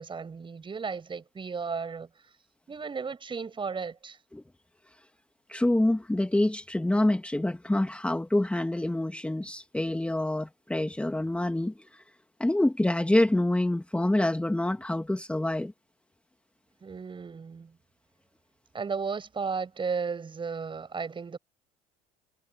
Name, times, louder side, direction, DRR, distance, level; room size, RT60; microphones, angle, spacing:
voice 1, 0.0-2.1 2.7-4.2 16.8-17.7 18.7-21.4, right 5 dB, 25° right, 6.9 m, -34 dB
voice 2, 5.5-12.0 12.4-15.7, left 1 dB, 5° left, 2.3 m, -26 dB
figure-of-eight pair, 65°, 21 cm